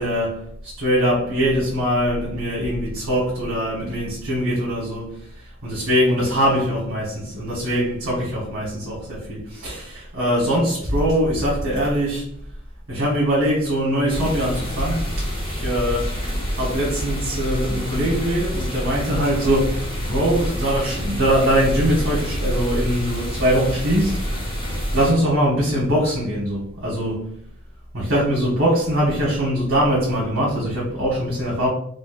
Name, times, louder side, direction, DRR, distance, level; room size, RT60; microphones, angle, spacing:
voice 1, 0.0-12.3 12.9-16.2 16.5-24.3 24.9-27.3 27.9-31.7, equal, 65° right, 1.1 m, -22 dB
sound 1, 14.1-25.1, equal, 25° left, 0.9 m, -27 dB
3.9 x 2.1 x 2.5 m
head